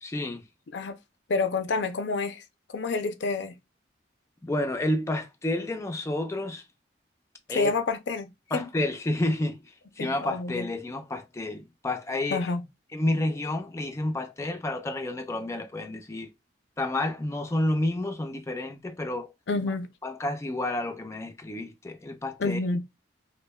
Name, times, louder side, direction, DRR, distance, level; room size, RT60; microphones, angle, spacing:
voice 1, 0.0-0.4 4.4-6.6 7.5-7.7 8.5-12.4 12.9-16.3 16.8-19.3 20.0-22.6, left 1 dB, 15° left, 0.4 m, -30 dB
voice 2, 1.3-2.4 2.7-3.5 7.5-8.7 10.0-10.7 12.3-12.6 19.5-19.9 22.4-22.8, left 3 dB, 70° left, 0.5 m, -28 dB
5.2 x 2.1 x 2.2 m
head